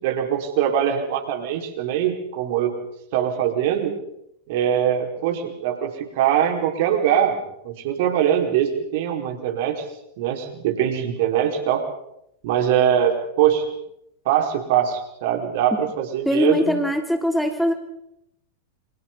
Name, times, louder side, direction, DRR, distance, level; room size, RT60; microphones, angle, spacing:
voice 1, 0.0-2.7 3.1-3.9 4.5-7.4 7.6-9.8 10.2-11.8 12.4-13.6 14.2-16.8, right 10 dB, 50° right, 2 dB, 4.8 m, -22 dB
voice 2, 16.2-17.7, left 1 dB, ahead, 4 dB, 3.2 m, -21 dB
29.0 x 27.0 x 4.0 m, 0.82 s
figure-of-eight pair, 90°, 0 cm